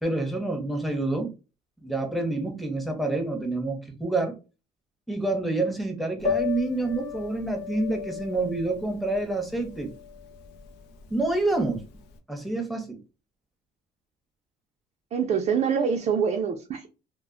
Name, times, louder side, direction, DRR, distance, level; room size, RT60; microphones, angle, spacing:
voice 1, 0.0-1.3 1.8-4.4 5.1-9.9 11.1-11.8 12.3-13.0, right 2 dB, ahead, 3 dB, 0.7 m, -27 dB
Piano, 6.2-12.1, left 8 dB, 85° left, 0.5 m, -35 dB
voice 2, 15.1-16.9, right 6 dB, 40° right, 3 dB, 0.4 m, -25 dB
2.1 x 2.0 x 3.6 m, 0.31 s
cardioid pair, 110°, 17 cm